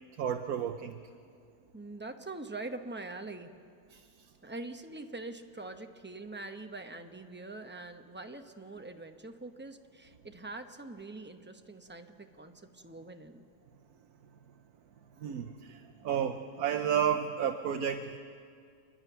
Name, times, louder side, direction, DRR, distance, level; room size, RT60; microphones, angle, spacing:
voice 1, 0.2-1.0 3.9-4.0 15.2-18.2, right 8 dB, 80° right, 5 dB, 1.3 m, -32 dB
voice 2, 1.7-3.5 4.4-13.5, right 2 dB, 10° right, 6 dB, 0.8 m, -44 dB
29.5 x 11.0 x 9.2 m, 2.2 s
omnidirectional pair, 1.6 m